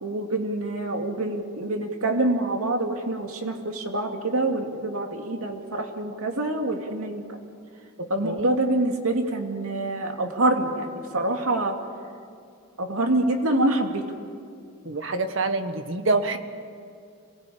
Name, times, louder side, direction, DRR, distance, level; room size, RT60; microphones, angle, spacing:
voice 1, 0.0-7.4 8.1-11.8 12.8-14.0, right 2 dB, 90° right, 3 dB, 2.6 m, -26 dB
voice 2, 8.0-8.5 14.8-16.4, right 3 dB, 60° right, 8 dB, 1.6 m, -26 dB
27.0 x 19.0 x 8.7 m, 2.3 s
head